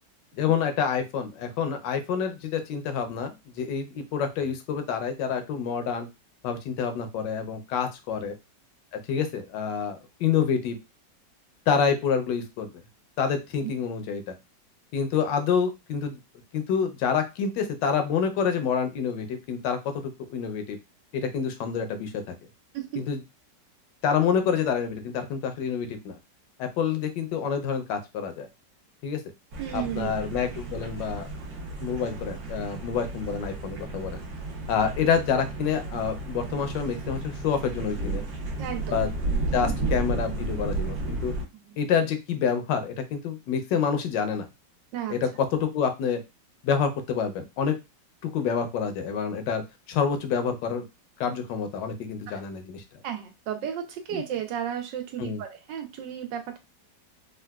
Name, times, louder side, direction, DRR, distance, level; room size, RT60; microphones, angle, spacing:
voice 1, 0.3-6.1 6.4-8.3 9.1-10.8 11.7-12.7 13.2-14.3 14.9-16.2 16.5-19.9 20.3-20.8 21.1-22.4 23.0-23.2 24.0-26.2 26.6-28.5 29.0-29.2 29.7-31.3 31.8-34.2 34.7-38.2 38.9-39.1 39.5-41.3 41.8-44.5 45.1-46.2 46.6-47.8 48.2-49.6 49.9-50.8 51.2-52.8 54.1-54.2 55.2-55.4, left 7 dB, 85° left, 7 dB, 1.3 m, -27 dB
sound 1, 29.5-41.5, right 2 dB, 60° right, 1.3 m, -33 dB
voice 2, 29.6-30.3 34.8-34.9 38.6-39.0 41.6-41.8 44.9-45.2 53.0-56.6, right 10 dB, 85° right, 5 dB, 1.3 m, -33 dB
3.7 x 2.3 x 2.2 m, 0.24 s
omnidirectional pair, 1.9 m